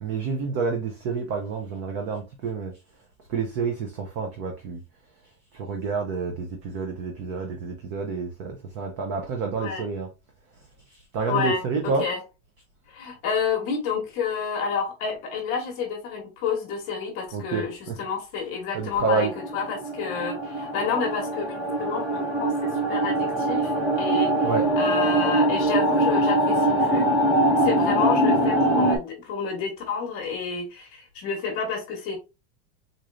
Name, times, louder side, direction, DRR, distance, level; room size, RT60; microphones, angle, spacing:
voice 1, 0.0-2.7 3.3-4.8 5.5-10.1 11.1-12.1 17.3-18.0 18.7-19.3 24.4-24.7, right 4 dB, 30° right, 0.5 m, -28 dB
voice 2, 11.3-12.2 12.9-27.1 27.6-32.2, left 5 dB, 35° left, 1.0 m, -30 dB
sound 1, 19.0-29.0, right 1 dB, 10° right, 1.1 m, -23 dB
3.9 x 3.1 x 2.4 m
supercardioid pair, 170°, 37 cm